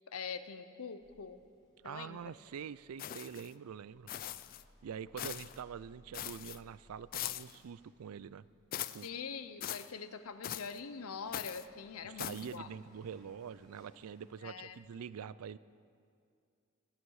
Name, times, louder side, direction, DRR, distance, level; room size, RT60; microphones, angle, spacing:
voice 1, 0.1-1.4 1.8-2.3 9.0-12.7 14.4-14.8, left 5 dB, 80° left, 11 dB, 0.7 m, -44 dB
sound 1, 1.0-15.0, equal, 20° left, 3.3 m, -66 dB
voice 2, 1.8-4.1 4.8-8.5 8.9-9.1 12.0-15.6, right 7 dB, 80° right, 18 dB, 0.4 m, -45 dB
sound 2, 3.0-3.5 4.1-4.6 5.2-5.6 6.1-6.6 7.1-7.6 8.7-9.1 9.6-9.9 10.4-10.8 11.3-11.7 12.2-12.6, left 11 dB, 40° left, 0.3 m, -41 dB
18.5 x 12.5 x 4.8 m, 2.3 s
head